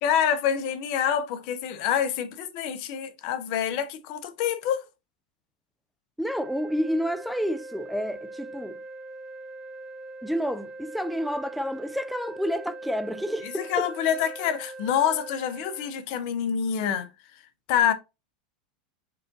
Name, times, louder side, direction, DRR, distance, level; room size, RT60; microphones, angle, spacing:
voice 1, 0.0-4.8 13.4-17.1 17.7-17.9, left 9 dB, 55° left, 0.7 m, -26 dB
voice 2, 6.2-8.8 10.2-13.9, equal, ahead, 0.4 m, -29 dB
sound 1, 6.2-15.9, right 2 dB, 15° right, 1.3 m, -42 dB
4.7 x 2.5 x 3.8 m
hypercardioid pair, 95°, 5 cm